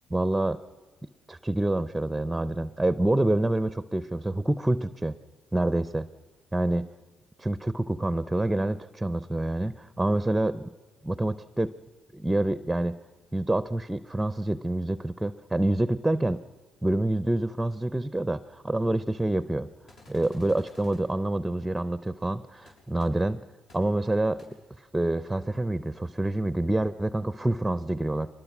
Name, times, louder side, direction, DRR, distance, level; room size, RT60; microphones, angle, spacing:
voice 1, 0.1-0.6 1.3-5.1 5.5-6.1 6.5-6.9 7.4-10.7 11.0-11.7 12.1-13.0 13.3-16.4 16.8-19.7 20.1-23.4 23.7-28.3, right 1 dB, 10° right, 15 dB, 0.6 m, -27 dB
sound 1, 19.9-21.0 22.7-22.8 23.0-23.1 23.7-23.8 24.4-24.5, left 2 dB, 70° left, 6.4 m, -53 dB
23.0 x 20.5 x 6.0 m, 1.4 s
cardioid pair, 90°, 0 cm